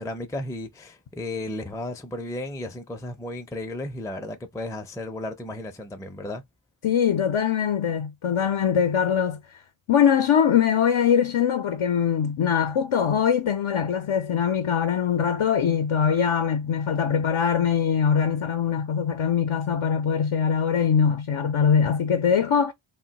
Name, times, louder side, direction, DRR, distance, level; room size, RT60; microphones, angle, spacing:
voice 1, 0.0-6.4, left 1 dB, 5° left, 0.4 m, -34 dB
voice 2, 6.8-9.4 9.9-22.7, left 7 dB, 70° left, 0.6 m, -22 dB
2.2 x 2.2 x 3.8 m
wide cardioid pair, 45°, 49 cm